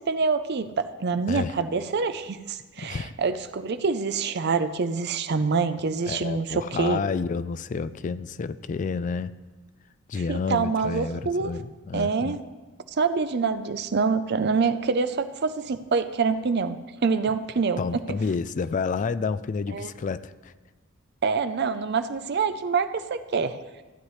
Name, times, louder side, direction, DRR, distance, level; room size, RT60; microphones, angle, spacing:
voice 1, 0.0-7.0 10.3-11.5 11.9-12.4 13.0-16.8 17.0-17.8 19.7-19.9 21.2-23.6, right 5 dB, 55° right, 11 dB, 0.5 m, -26 dB
voice 2, 2.8-3.1 6.1-9.4 10.1-12.4 17.8-20.5, left 5 dB, 40° left, 15 dB, 0.3 m, -30 dB
15.0 x 9.8 x 3.2 m, 1.2 s
head